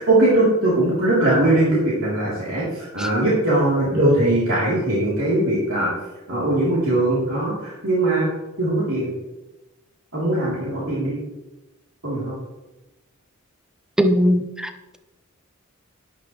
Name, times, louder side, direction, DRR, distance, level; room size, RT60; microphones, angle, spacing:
voice 1, 0.0-5.9 6.3-8.3 8.6-9.1 10.1-11.2 12.0-12.3, right 1 dB, 70° right, -7 dB, 3.6 m, -20 dB
voice 2, 14.0-15.0, equal, 5° right, 7 dB, 0.9 m, -20 dB
13.0 x 11.0 x 3.3 m, 1.0 s
head